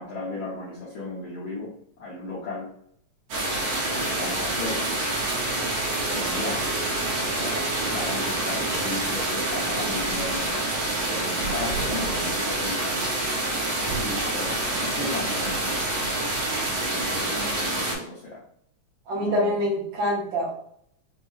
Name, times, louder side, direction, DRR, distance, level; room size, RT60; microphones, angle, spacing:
voice 1, 0.0-1.7 2.0-2.7 3.9-4.9 5.5-6.6 7.2-7.6 7.9-10.7 11.1-13.0 14.0-16.0 16.9-18.4 19.2-19.5, left 2 dB, 70° left, -7 dB, 1.2 m, -35 dB
sound 1, 3.3-18.0, right 2 dB, 85° right, 2.6 m, -27 dB
voice 2, 19.1-20.5, equal, 65° right, -4 dB, 2.3 m, -25 dB
5.4 x 2.7 x 2.3 m, 0.68 s
omnidirectional pair, 3.4 m